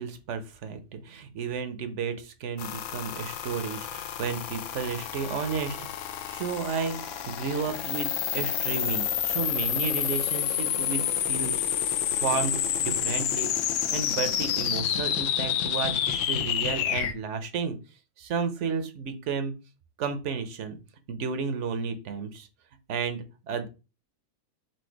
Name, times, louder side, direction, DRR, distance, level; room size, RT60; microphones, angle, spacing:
voice 1, 0.0-5.8 6.3-7.0 7.3-13.5 13.9-17.8 18.2-19.5 20.0-20.8 21.1-22.5 22.9-23.7, right 5 dB, 60° right, 9 dB, 0.9 m, -32 dB
sound 1, 2.6-17.1, left 9 dB, 65° left, 0.8 m, -29 dB
4.5 x 2.5 x 4.6 m, 0.31 s
omnidirectional pair, 1.6 m